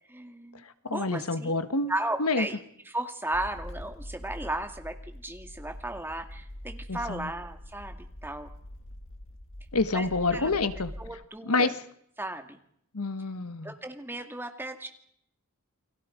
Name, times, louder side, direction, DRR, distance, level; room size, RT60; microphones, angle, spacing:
voice 1, 0.1-0.6 0.9-1.6 1.9-2.6 2.9-8.5 9.9-10.1 10.3-10.5 11.0-11.7 12.2-12.6 13.6-14.9, right 1 dB, 10° right, 5 dB, 2.1 m, -35 dB
voice 2, 0.6-1.9 2.2-2.5 6.9-7.3 9.7-10.9 11.5-11.7 12.9-13.7, left 3 dB, 90° left, 11 dB, 1.4 m, -28 dB
sound 1, 3.3-11.1, left 1 dB, 60° left, 1.9 m, -43 dB
29.5 x 22.0 x 5.1 m, 0.70 s
head